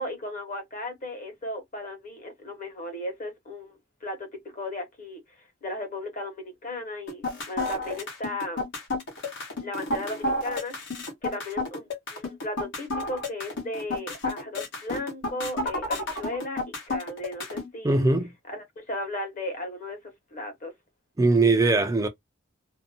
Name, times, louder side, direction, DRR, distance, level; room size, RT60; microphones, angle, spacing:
voice 1, 0.0-5.2 5.6-8.6 9.6-10.8 11.2-18.1 18.5-20.7, left 1 dB, 40° left, 1.0 m, -36 dB
sound 1, 7.1-17.7, left 2 dB, 65° left, 1.0 m, -31 dB
voice 2, 17.8-18.3 21.2-22.1, right 3 dB, 15° right, 0.3 m, -20 dB
2.6 x 2.1 x 2.6 m
head